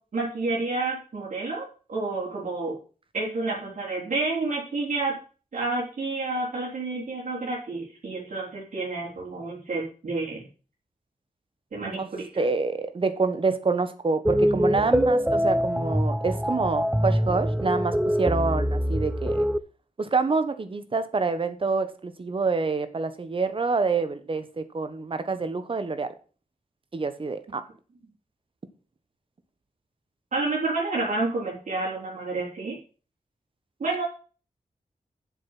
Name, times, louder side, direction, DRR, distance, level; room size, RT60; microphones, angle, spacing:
voice 1, 0.1-2.8 3.1-5.1 5.5-10.4 11.7-12.3 30.3-32.7 33.8-34.0, right 3 dB, 65° right, -6 dB, 4.2 m, -29 dB
voice 2, 12.4-19.5 20.0-26.1 26.9-27.6, right 4 dB, 40° right, 11 dB, 1.3 m, -27 dB
sound 1, 14.3-19.6, equal, 5° right, 0.5 m, -24 dB
7.7 x 7.6 x 7.7 m, 0.37 s
wide cardioid pair, 140°, 14 cm